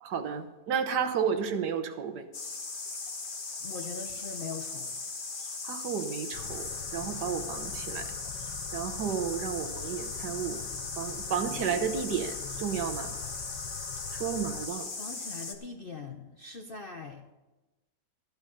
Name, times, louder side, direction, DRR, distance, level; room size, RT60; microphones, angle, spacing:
voice 1, 0.0-2.2 5.6-8.0 8.7-10.6 11.0-13.1 14.1-14.9, right 7 dB, 75° right, 9 dB, 1.6 m, -32 dB
sound 1, 2.3-15.6, left 3 dB, 35° left, 1.2 m, -38 dB
voice 2, 3.6-4.9 11.3-11.7 15.0-17.2, left 4 dB, 50° left, 4 dB, 0.7 m, -42 dB
sound 2, 6.3-14.7, left 9 dB, 80° left, 1.3 m, -44 dB
13.5 x 9.3 x 5.4 m, 1.1 s
omnidirectional pair, 1.9 m